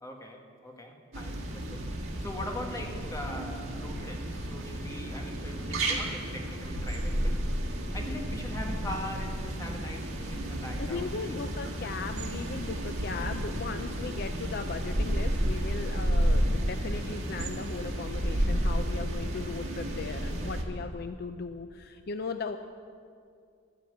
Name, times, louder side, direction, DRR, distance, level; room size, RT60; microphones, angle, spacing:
voice 1, 0.0-1.9 2.2-7.4 7.9-11.4, left 1 dB, 15° left, 1 dB, 1.5 m, -41 dB
sound 1, 1.1-20.6, right 1 dB, 85° right, 1.7 m, -32 dB
voice 2, 10.7-22.6, left 4 dB, 50° left, 8 dB, 0.4 m, -37 dB
13.0 x 9.5 x 7.9 m, 2.4 s
head